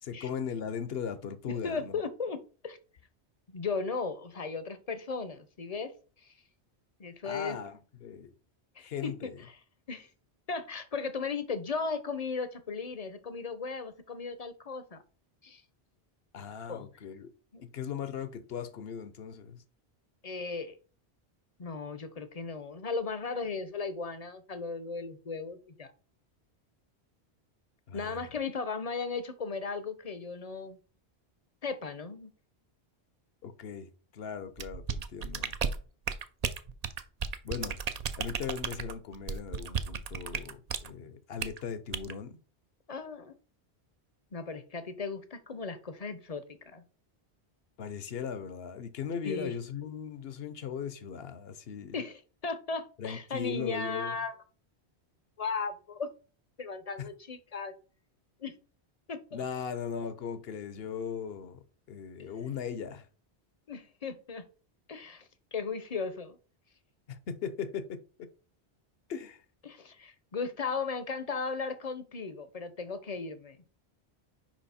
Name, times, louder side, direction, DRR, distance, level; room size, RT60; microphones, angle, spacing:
voice 1, 0.0-2.0 7.2-8.3 8.8-9.4 16.3-17.3 17.6-19.6 27.9-28.2 33.4-35.6 37.4-37.8 38.2-42.4 47.8-52.0 53.0-54.2 57.0-57.1 59.3-61.6 61.9-63.1 67.1-68.3 69.1-69.4, left 7 dB, 65° left, 1.0 m, -38 dB
voice 2, 1.5-2.8 3.5-5.9 6.2-6.3 7.0-7.6 8.8-9.6 9.9-10.1 10.5-15.0 15.4-15.6 16.7-16.9 17.5-17.6 20.2-20.8 21.6-25.9 27.9-30.8 31.6-32.3 42.9-43.3 44.3-46.8 49.2-49.5 51.9-54.3 55.4-56.1 56.6-57.7 58.4-58.5 59.1-59.4 63.7-64.5 64.9-66.4 69.6-73.6, left 4 dB, 40° left, 0.7 m, -36 dB
sound 1, 34.6-40.9 41.4-41.6 41.9-42.1, right 6 dB, 50° right, 0.5 m, -34 dB
5.9 x 5.1 x 4.2 m
omnidirectional pair, 1.1 m